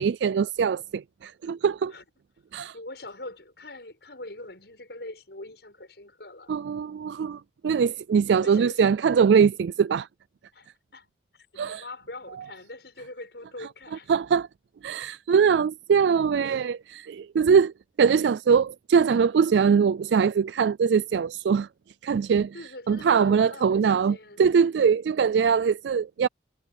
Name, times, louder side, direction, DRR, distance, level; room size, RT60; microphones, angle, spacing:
voice 1, 0.0-1.9 2.5-2.7 6.5-10.1 11.6-11.8 14.1-14.5 14.8-17.7 18.0-21.7 22.0-22.5 22.9-26.3, right 6 dB, 80° right, 0.3 m, -22 dB
voice 2, 2.7-6.5 8.4-8.8 10.5-11.1 11.3-14.1 22.5-24.4, left 2 dB, 70° left, 6.5 m, -43 dB
head